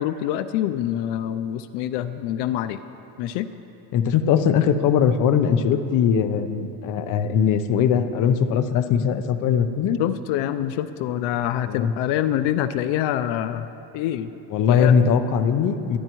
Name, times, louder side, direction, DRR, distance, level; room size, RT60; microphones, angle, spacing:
voice 1, 0.0-2.8 3.2-3.5 10.0-13.7 13.9-14.3 14.7-14.9, left 11 dB, 85° left, 11 dB, 0.6 m, -25 dB
voice 2, 3.9-10.0 11.7-11.9 14.5-16.0, left 7 dB, 50° left, 9 dB, 0.7 m, -20 dB
23.0 x 11.0 x 3.1 m, 2.9 s
cardioid pair, 150°, 40 cm